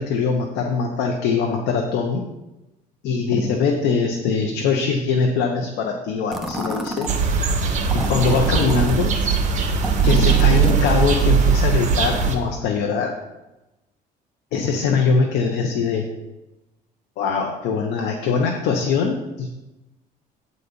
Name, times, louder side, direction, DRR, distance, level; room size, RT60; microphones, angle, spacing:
voice 1, 0.0-2.2 3.0-7.1 7.9-9.1 10.0-13.2 14.5-16.1 17.2-19.5, left 5 dB, 85° left, 2 dB, 1.0 m, -22 dB
sound 1, 6.3-7.2 7.9-9.0 9.8-11.0, equal, ahead, 1.0 m, -29 dB
sound 2, 7.1-12.4, right 6 dB, 45° right, 1.6 m, -19 dB
9.2 x 4.2 x 6.7 m, 1.0 s
cardioid pair, 110°, 17 cm